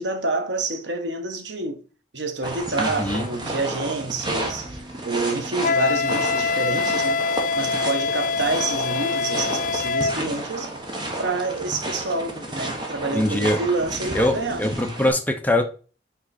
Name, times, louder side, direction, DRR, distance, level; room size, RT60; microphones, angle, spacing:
voice 1, 0.0-1.8 2.1-7.2 7.5-10.7 11.2-14.6, right 3 dB, 80° right, 1.1 m, -28 dB
sound 1, 2.4-15.1, right 1 dB, 25° right, 1.3 m, -32 dB
voice 2, 2.8-3.2 13.1-13.6 14.1-15.6, left 1 dB, 10° left, 0.7 m, -22 dB
Wind instrument woodwind instrument, 5.6-10.2, left 4 dB, 45° left, 0.4 m, -24 dB
5.6 x 5.1 x 4.2 m
head